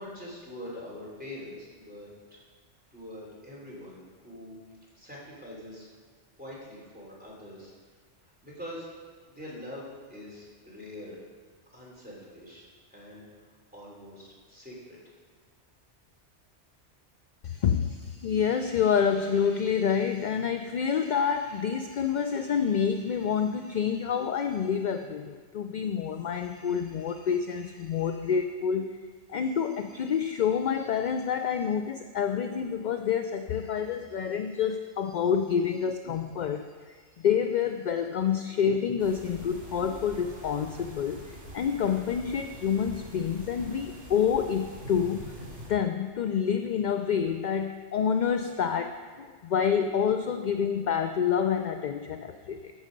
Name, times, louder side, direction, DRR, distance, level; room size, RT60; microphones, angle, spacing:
voice 1, 0.0-2.4 2.9-4.6 4.9-5.9 6.4-7.7 8.4-8.9 9.3-11.2 11.7-15.0, left 1 dB, 5° right, -6 dB, 3.2 m, -44 dB
voice 2, 17.4-29.0 29.3-41.2 41.5-45.2 45.7-52.7, left 7 dB, 60° left, 7 dB, 0.5 m, -28 dB
sound 1, 39.0-45.7, right 1 dB, 75° right, 2.6 m, -45 dB
14.0 x 6.4 x 5.2 m, 1.6 s
omnidirectional pair, 1.2 m